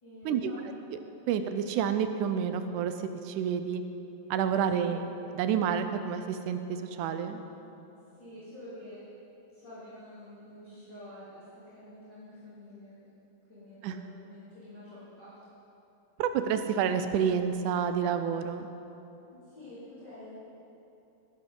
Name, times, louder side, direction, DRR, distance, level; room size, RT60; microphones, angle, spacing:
voice 1, 0.0-0.6 4.7-5.0 8.2-9.0 9.5-13.1 13.5-15.4 19.3-20.4, left 1 dB, 35° left, -14 dB, 3.5 m, -48 dB
voice 2, 1.3-3.8 4.3-5.0 5.3-7.4 13.8-14.0 16.2-18.7, right 7 dB, 85° right, 9 dB, 2.1 m, -29 dB
15.5 x 11.0 x 3.9 m, 3.0 s
omnidirectional pair, 3.5 m